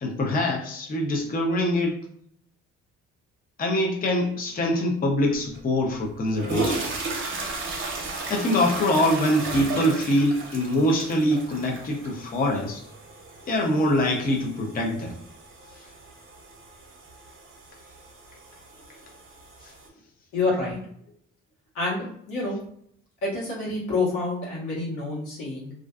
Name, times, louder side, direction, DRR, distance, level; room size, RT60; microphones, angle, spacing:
voice 1, 0.0-2.0 3.6-6.8 8.3-12.8 13.4-15.2, left 1 dB, 30° left, 1 dB, 0.5 m, -24 dB
sound 1, 5.5-5.6 6.2-19.9, right 3 dB, 40° right, 0.7 m, -35 dB
voice 2, 20.3-20.8 21.7-22.6 23.2-25.7, left 3 dB, 90° left, -5 dB, 1.2 m, -28 dB
2.4 x 2.3 x 2.3 m, 0.65 s
cardioid pair, 90°, 30 cm